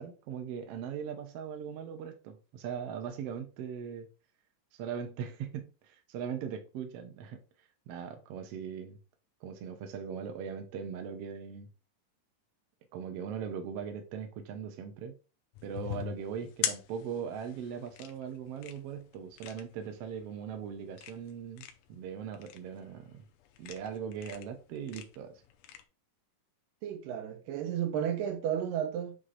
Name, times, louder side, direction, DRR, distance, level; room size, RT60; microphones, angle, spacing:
voice 1, 0.0-4.1 4.7-7.4 7.9-9.0 9.4-11.7 12.9-15.1 15.6-23.2 23.6-25.3, right 7 dB, 65° right, 1.6 m, -40 dB
sound 1, 15.5-25.8, left 10 dB, 80° left, 2.1 m, -42 dB
voice 2, 26.8-29.2, right 9 dB, 85° right, 2.5 m, -33 dB
7.8 x 3.0 x 4.1 m
omnidirectional pair, 3.8 m